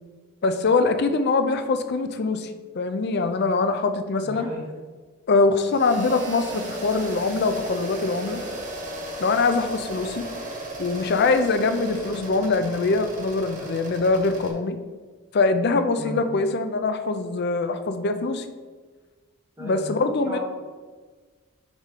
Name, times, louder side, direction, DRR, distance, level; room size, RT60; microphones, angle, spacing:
voice 1, 0.4-4.5 5.3-8.4 9.2-10.2 10.8-14.8 15.3-18.5 19.6-20.4, left 3 dB, 50° left, 9 dB, 0.4 m, -23 dB
voice 2, 4.3-4.6 16.0-16.3 19.6-19.9 20.3-20.4, equal, 15° right, -6 dB, 0.9 m, -34 dB
sound 1, 5.7-14.5, right 1 dB, 35° right, 1.2 m, -35 dB
5.6 x 4.9 x 3.6 m, 1.4 s
head